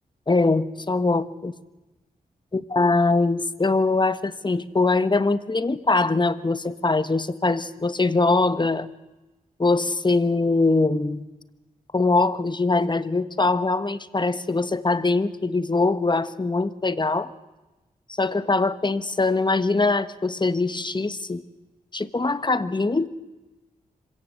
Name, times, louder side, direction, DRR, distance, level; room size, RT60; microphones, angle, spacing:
voice 1, 0.3-1.5 2.5-8.9 9.6-11.3 11.9-17.3 18.1-21.4 21.9-23.1, left 3 dB, 30° left, 13 dB, 1.4 m, -22 dB
26.0 x 17.0 x 8.0 m, 1.1 s
cardioid pair, 50°, 15 cm